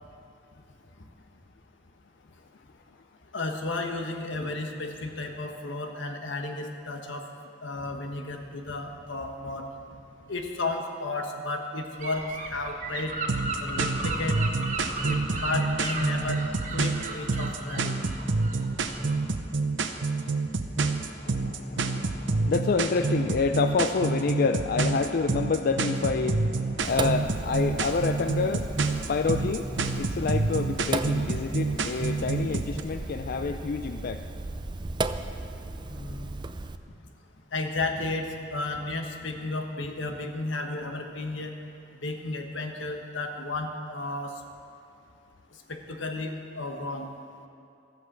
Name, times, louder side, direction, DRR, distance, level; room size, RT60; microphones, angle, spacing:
voice 1, 3.3-7.2 7.6-9.7 10.3-13.1 13.6-14.6 15.0-16.4 16.7-18.0 35.9-36.3 37.5-41.5 42.0-44.3 45.7-47.1, left 2 dB, 80° left, 4 dB, 1.3 m, -33 dB
Gull seagull / Wind, 12.0-19.3, right 2 dB, 40° right, 1.3 m, -35 dB
sound 1, 13.3-32.8, right 3 dB, 70° right, 0.7 m, -28 dB
voice 2, 21.2-34.2, left 4 dB, 50° left, 7 dB, 0.4 m, -28 dB
Sink (filling or washing), 26.8-36.8, right 3 dB, 25° right, 0.4 m, -36 dB
13.5 x 8.2 x 7.4 m, 2.7 s
head